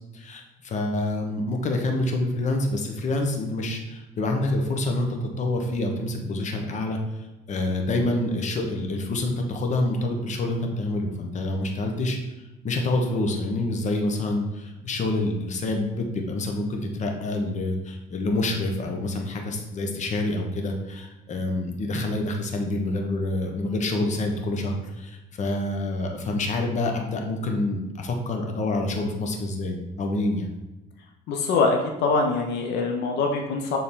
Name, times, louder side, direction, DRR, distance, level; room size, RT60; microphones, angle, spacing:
voice 1, 0.1-12.2 12.6-30.5, left 2 dB, 45° left, 3 dB, 1.1 m, -27 dB
voice 2, 31.3-33.8, left 4 dB, 80° left, 2 dB, 0.8 m, -24 dB
6.9 x 3.8 x 3.7 m, 1.0 s
cardioid pair, 110°, 17 cm